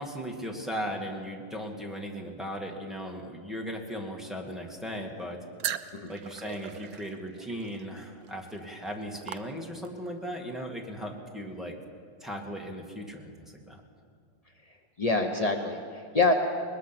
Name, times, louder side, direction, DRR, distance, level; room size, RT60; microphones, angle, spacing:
voice 1, 0.0-5.4 6.1-11.7 12.2-13.3 13.7-13.8, equal, ahead, 0 dB, 1.8 m, -37 dB
sound 1, 5.6-10.1, right 10 dB, 65° right, 1.1 m, -40 dB
voice 2, 15.0-16.3, left 3 dB, 45° left, 3 dB, 0.4 m, -26 dB
21.0 x 20.5 x 6.0 m, 2.1 s
omnidirectional pair, 2.1 m